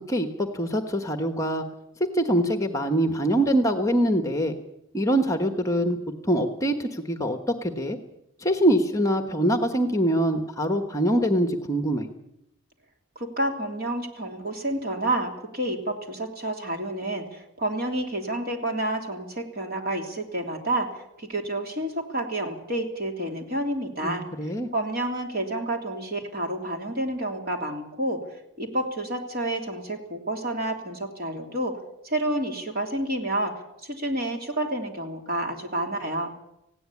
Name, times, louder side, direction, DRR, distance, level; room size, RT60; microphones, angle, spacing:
voice 1, 0.1-1.6 2.1-4.5 4.9-6.0 6.3-8.0 8.4-12.1 24.0-24.7, right 1 dB, 15° left, 6 dB, 1.2 m, -24 dB
voice 2, 13.1-20.9 21.2-24.2 24.7-28.2 28.6-31.7 32.0-33.5 33.8-36.3, right 1 dB, 45° right, 3 dB, 3.2 m, -29 dB
19.0 x 16.0 x 8.6 m, 0.84 s
head